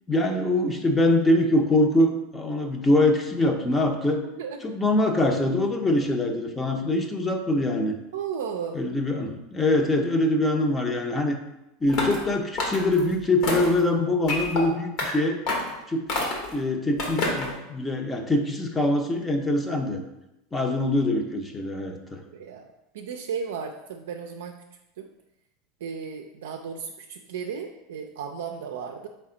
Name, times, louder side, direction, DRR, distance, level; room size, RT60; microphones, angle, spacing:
voice 1, 0.1-4.2 4.6-8.0 8.7-11.4 11.8-15.4 15.9-16.0 16.5-20.0 20.5-22.2, left 1 dB, 15° left, 4 dB, 0.6 m, -23 dB
voice 2, 8.1-8.8 22.3-22.7 22.9-24.5 25.0-25.1 25.8-29.1, right 6 dB, 80° right, 3 dB, 0.4 m, -34 dB
sound 1, 11.9-12.2 12.6-13.0 13.4-13.8 14.3-14.6 15.0-15.1 15.5-15.7 16.1-16.5 17.0-17.5, left 2 dB, 60° left, 1.3 m, -27 dB
4.1 x 3.4 x 3.8 m, 0.90 s
hypercardioid pair, 100°, 0 cm